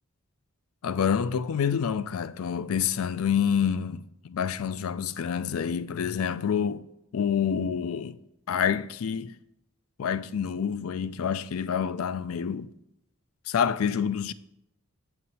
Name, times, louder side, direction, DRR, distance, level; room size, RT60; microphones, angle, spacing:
voice 1, 0.8-6.9 7.1-8.2 8.5-9.3 10.0-12.7 13.5-14.3, left 7 dB, 75° left, 0.4 m, -27 dB
7.5 x 7.3 x 4.1 m
head